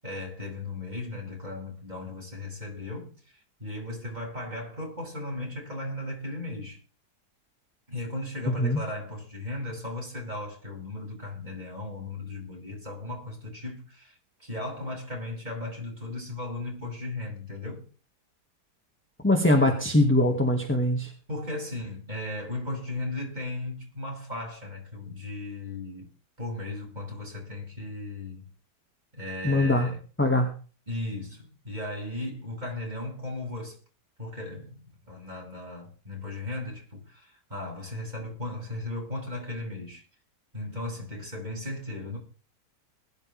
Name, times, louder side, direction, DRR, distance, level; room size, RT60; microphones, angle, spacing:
voice 1, 0.0-6.8 7.9-17.9 21.3-26.1 26.4-28.5 29.1-30.0 30.9-33.8 34.2-34.8 35.1-40.0 40.5-42.2, left 2 dB, 25° right, 7.9 m, -36 dB
voice 2, 8.5-8.8 19.2-21.1 29.4-29.9 30.2-30.5, left 1 dB, 5° left, 2.2 m, -22 dB
21.0 x 12.0 x 3.6 m
omnidirectional pair, 1.8 m